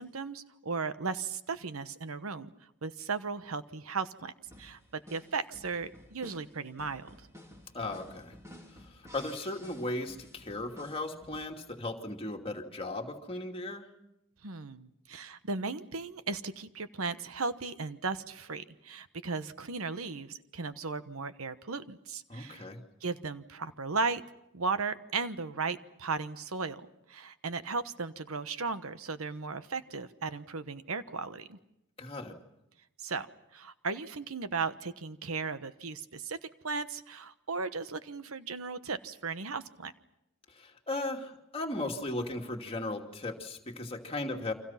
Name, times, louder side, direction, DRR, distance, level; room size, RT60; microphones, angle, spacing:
voice 1, 0.0-2.5 2.8-4.3 4.6-4.8 5.1-7.1 14.4-22.7 23.0-24.2 24.5-26.8 27.1-31.6 33.0-33.3 33.5-36.4 36.6-39.9, right 4 dB, 85° right, 12 dB, 1.2 m, -36 dB
sound 1, 4.5-11.5, left 1 dB, 15° right, 3.7 m, -53 dB
voice 2, 7.7-8.3 8.7-13.9 22.3-22.8 32.0-32.3 40.5-44.5, left 2 dB, 25° left, 2 dB, 2.6 m, -37 dB
30.0 x 25.0 x 5.8 m, 0.84 s
head